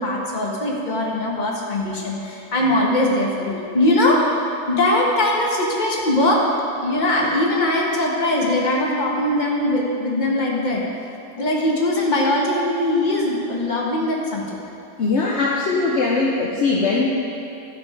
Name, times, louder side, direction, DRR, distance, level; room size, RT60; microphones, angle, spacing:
voice 1, 0.0-4.2 4.7-6.4 6.8-10.8 11.4-14.5, left 1 dB, 30° left, -3 dB, 1.3 m, -21 dB
voice 2, 15.0-17.1, left 3 dB, 55° left, -2 dB, 0.8 m, -20 dB
13.5 x 5.2 x 4.9 m, 2.7 s
omnidirectional pair, 1.8 m